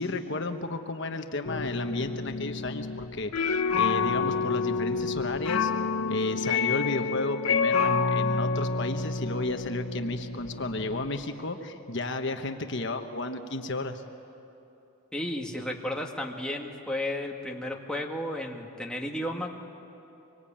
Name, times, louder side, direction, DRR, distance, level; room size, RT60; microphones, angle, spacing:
voice 1, 0.0-5.7 6.1-14.0, left 2 dB, 55° left, 6 dB, 1.2 m, -33 dB
sound 1, 1.4-11.2, left 5 dB, 90° left, 1.0 m, -29 dB
voice 2, 15.1-19.5, left 1 dB, 5° left, 0 dB, 1.8 m, -33 dB
24.5 x 24.5 x 8.8 m, 2.9 s
head